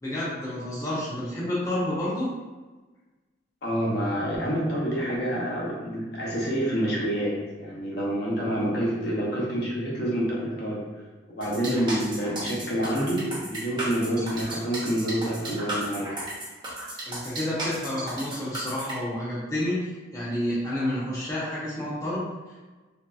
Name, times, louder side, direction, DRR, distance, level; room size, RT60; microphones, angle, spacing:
voice 1, 0.0-2.3 17.1-22.6, left 1 dB, 20° left, -8 dB, 0.6 m, -30 dB
voice 2, 3.6-10.8 11.3-16.1, right 1 dB, 60° left, -5 dB, 0.7 m, -27 dB
sound 1, 11.4-18.9, right 1 dB, 25° right, 0.7 m, -34 dB
2.9 x 2.7 x 2.3 m, 1.2 s
head